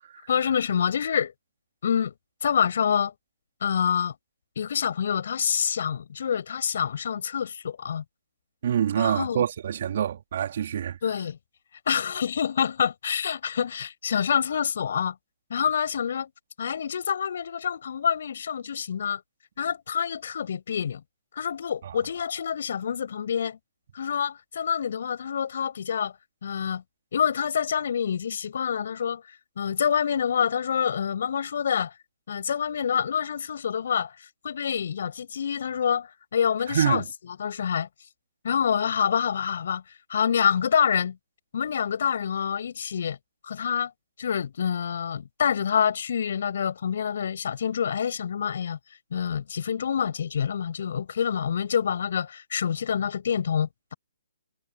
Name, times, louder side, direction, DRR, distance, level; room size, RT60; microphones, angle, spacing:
voice 1, 0.3-1.3 1.8-2.1 2.4-3.1 3.6-4.1 4.6-8.0 9.0-9.4 11.0-11.4 11.9-15.1 15.5-16.3 16.6-19.2 19.6-21.0 21.4-23.6 23.9-26.1 26.4-26.8 27.1-29.2 29.6-31.9 32.3-34.1 34.4-37.9 38.4-39.8 40.1-41.2 41.5-43.2 43.4-43.9 44.2-48.8 49.1-53.9, left 7 dB, 55° left, 5.9 m, -27 dB
voice 2, 8.6-11.0 21.8-22.0 36.7-37.0, right 9 dB, 50° right, 3.5 m, -26 dB
figure-of-eight pair, 130°, 0 cm